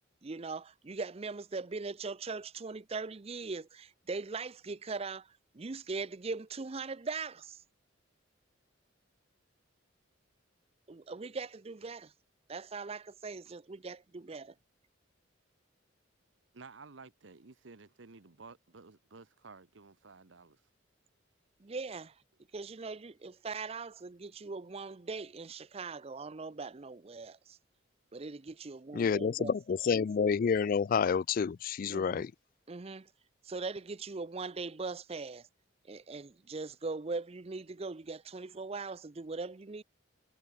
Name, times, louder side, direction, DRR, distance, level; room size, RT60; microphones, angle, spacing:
voice 1, 0.2-7.6 10.9-12.1 12.5-14.5 21.6-22.2 22.5-27.6 28.1-29.5 31.9-32.3 32.7-33.1 33.4-35.5 35.8-39.8, right 4 dB, 30° right, 0.5 m, -40 dB
voice 2, 16.5-20.6, right 4 dB, 70° right, 1.0 m, -53 dB
voice 3, 28.9-32.3, left 6 dB, 45° left, 0.3 m, -29 dB
head